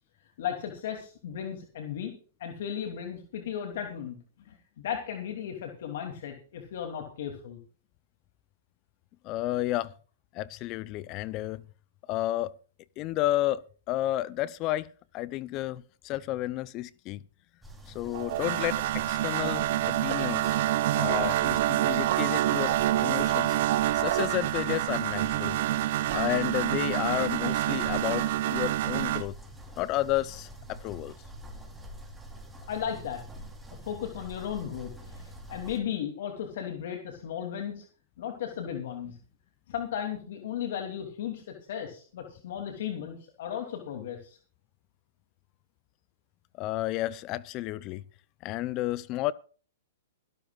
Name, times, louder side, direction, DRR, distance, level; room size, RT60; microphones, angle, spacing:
voice 1, 0.4-2.1 2.4-7.6 32.7-33.2 33.8-37.8 38.2-39.2 39.7-44.4, left 9 dB, 65° left, 2.8 m, -35 dB
voice 2, 9.2-9.9 10.3-11.6 12.1-12.5 13.0-13.6 13.9-14.9 15.1-17.2 17.9-20.6 20.9-25.6 26.1-29.3 29.8-31.1 46.6-48.0 48.4-49.3, left 15 dB, 35° left, 0.6 m, -31 dB
sound 1, 17.6-35.8, right 1 dB, 5° right, 3.5 m, -46 dB
sound 2, 18.1-29.2, right 14 dB, 55° right, 0.7 m, -27 dB
23.0 x 12.0 x 2.4 m
hypercardioid pair, 135°, 0 cm